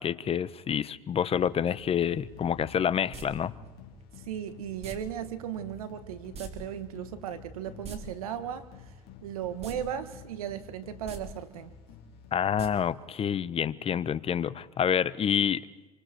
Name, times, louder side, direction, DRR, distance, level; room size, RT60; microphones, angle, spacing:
voice 1, 0.0-3.5 12.3-15.6, left 8 dB, 35° left, 16 dB, 1.0 m, -28 dB
sound 1, 1.3-12.8, left 5 dB, 55° left, 4.0 m, -50 dB
sound 2, 3.1-3.3 4.8-5.0 6.3-6.5 6.8-6.9 7.7-8.0 9.6-9.8 10.1-10.2 11.0-11.2 12.6-12.7 13.0-13.1, right 4 dB, 35° right, 3.7 m, -41 dB
voice 2, 4.3-8.7 9.2-11.7, right 9 dB, 90° right, 11 dB, 1.8 m, -36 dB
27.5 x 25.0 x 4.6 m, 1.1 s
supercardioid pair, 90°, 18 cm